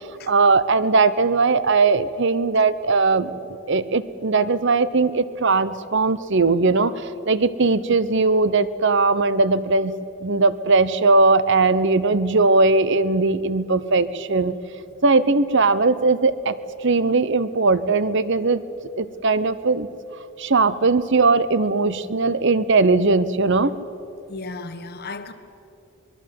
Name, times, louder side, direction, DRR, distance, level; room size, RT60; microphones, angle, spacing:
voice 1, 0.3-3.3 3.7-9.9 10.2-14.5 15.0-16.5 16.8-18.6 19.0-19.9 20.4-23.7, right 3 dB, 55° right, 15 dB, 0.9 m, -19 dB
voice 2, 24.3-25.3, left 3 dB, 45° left, 8 dB, 1.4 m, -34 dB
26.5 x 21.5 x 7.8 m, 2.7 s
head